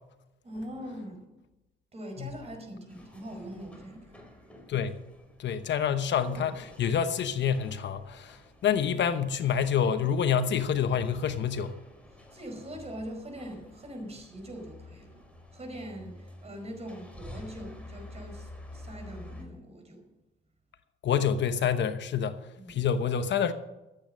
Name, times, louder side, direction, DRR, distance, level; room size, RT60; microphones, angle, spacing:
voice 1, 0.4-1.4 1.9-4.3 12.3-15.2 15.5-20.0 22.6-22.8, equal, 30° right, 4.9 m, -42 dB
sound 1, 2.9-19.4, left 1 dB, 5° left, 3.6 m, -49 dB
voice 2, 5.4-11.7 21.0-22.4 22.7-23.5, left 7 dB, 65° left, 1.0 m, -27 dB
14.0 x 8.8 x 6.4 m
cardioid pair, 90°, 20 cm